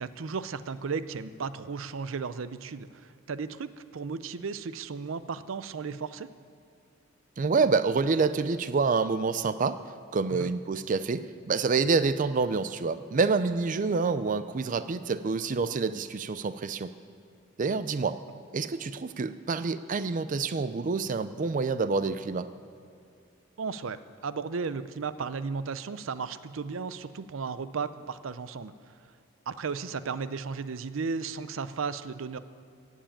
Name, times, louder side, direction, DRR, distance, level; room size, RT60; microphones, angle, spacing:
voice 1, 0.0-6.3 10.3-10.5 23.6-28.9 29.5-32.4, right 5 dB, 90° right, 14 dB, 0.6 m, -35 dB
voice 2, 7.4-9.8 10.1-16.9 17.6-18.2 18.5-22.5, right 4 dB, 40° right, 13 dB, 0.4 m, -27 dB
16.0 x 7.4 x 8.9 m, 2.5 s
head